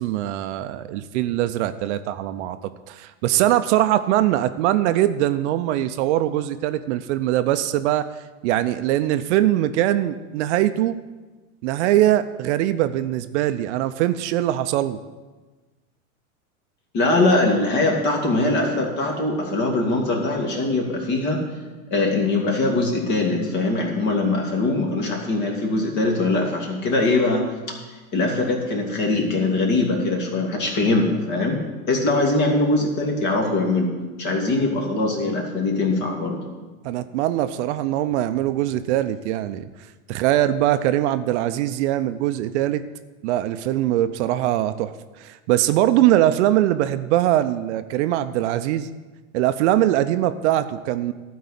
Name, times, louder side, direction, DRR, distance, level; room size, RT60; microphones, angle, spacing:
voice 1, 0.0-8.1 8.4-11.0 11.6-15.0 36.8-39.7 40.1-42.8 43.2-48.9 49.3-51.1, right 13 dB, 55° right, 11 dB, 0.6 m, -22 dB
voice 2, 16.9-21.4 21.9-27.7 28.1-31.6 31.9-33.9 34.2-36.4, left 2 dB, 45° left, 0 dB, 2.7 m, -22 dB
12.0 x 4.7 x 8.5 m, 1.3 s
hypercardioid pair, 115°, 42 cm